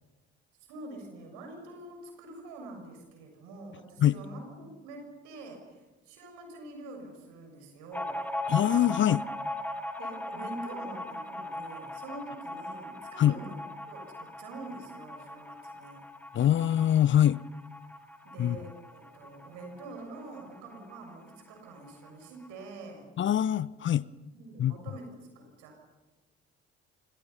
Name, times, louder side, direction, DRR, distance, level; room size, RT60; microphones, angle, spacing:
voice 1, 0.7-8.2 9.9-16.0 18.2-23.1 24.3-25.8, right 2 dB, 65° right, 6.7 m, -45 dB
sound 1, 7.9-21.0 21.3-21.4 21.7-22.5, left 1 dB, 5° left, 1.6 m, -39 dB
voice 2, 8.5-9.2 13.2-13.4 16.3-17.4 18.4-18.6 23.2-24.1 24.6-24.7, left 11 dB, 35° left, 0.7 m, -24 dB
29.0 x 26.5 x 5.6 m
figure-of-eight pair, 50°, 33 cm